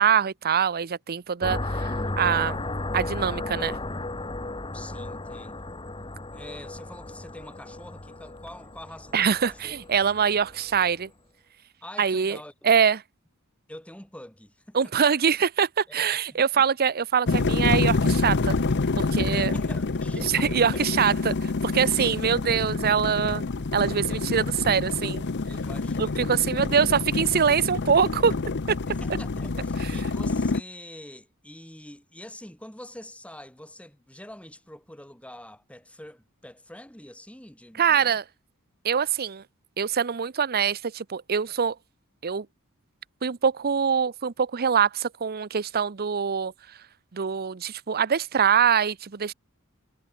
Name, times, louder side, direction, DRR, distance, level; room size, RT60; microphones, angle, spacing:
voice 1, 0.0-2.7 2.9-3.8 9.1-11.1 12.0-12.4 12.6-13.0 14.7-18.6 19.0-19.5 20.2-21.3 21.6-23.5 23.7-25.3 26.0-28.4 28.7-28.8 29.8-29.9 37.8-38.2 38.8-39.4 39.8-41.8 42.2-42.5 43.2-46.5 47.1-49.3, right 7 dB, 45° right, 0.7 m, -24 dB
sound 1, 1.4-11.0, left 2 dB, 20° left, 1.5 m, -34 dB
voice 2, 1.7-2.1 4.7-5.7 6.3-9.7 11.8-12.5 13.7-14.8 15.9-16.6 19.3-20.8 25.5-26.3 28.9-38.2, left 1 dB, 5° left, 4.2 m, -45 dB
sound 2, 17.3-30.6, left 3 dB, 55° left, 0.8 m, -27 dB
sound 3, 18.5-24.0, right 1 dB, 60° right, 7.1 m, -55 dB
head